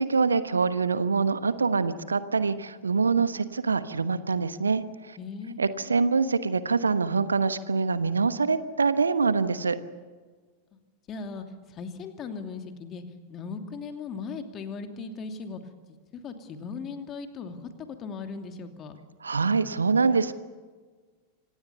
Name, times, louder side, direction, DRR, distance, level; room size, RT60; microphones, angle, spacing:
voice 1, 0.0-5.2 5.6-9.8 19.2-20.3, right 4 dB, 75° right, 13 dB, 1.1 m, -25 dB
voice 2, 5.1-6.0 10.7-10.8 11.1-13.0 13.3-15.6 15.9-19.0, left 5 dB, 30° left, 6 dB, 2.7 m, -38 dB
26.5 x 18.5 x 7.0 m, 1.4 s
figure-of-eight pair, 90°, 0 cm